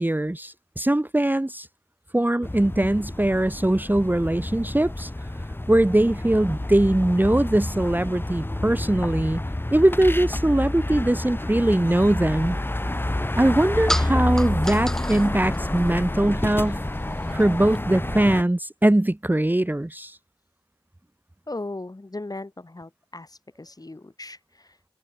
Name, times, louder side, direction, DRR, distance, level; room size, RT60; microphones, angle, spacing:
voice 1, 0.0-1.7 2.1-5.1 5.7-9.4 9.7-12.6 13.4-16.8 17.3-20.2, right 1 dB, 20° right, 1.0 m, -21 dB
sound 1, 2.4-18.4, left 1 dB, 20° left, 1.3 m, -29 dB
sound 2, 12.3-17.8, equal, 5° left, 5.6 m, -36 dB
voice 2, 21.5-24.8, left 2 dB, 40° left, 2.8 m, -37 dB
wide cardioid pair, 70°, 10 cm